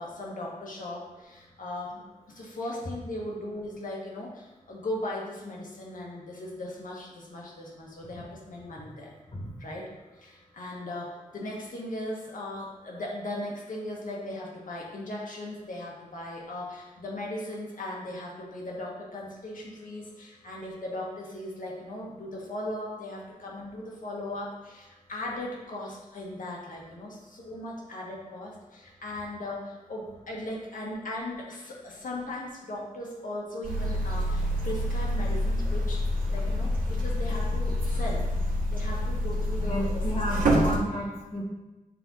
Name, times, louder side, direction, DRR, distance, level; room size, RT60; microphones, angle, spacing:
voice 1, 0.0-2.0 2.3-9.1 9.6-36.0 36.3-38.2 38.7-40.0 40.4-40.5, left 1 dB, 70° left, -3 dB, 1.8 m, -38 dB
sound 1, 33.6-40.8, equal, 80° right, 1.5 m, -27 dB
voice 2, 39.6-41.4, equal, 50° left, -3 dB, 1.8 m, -32 dB
9.1 x 3.4 x 4.1 m, 1.1 s
wide cardioid pair, 95°, 14 cm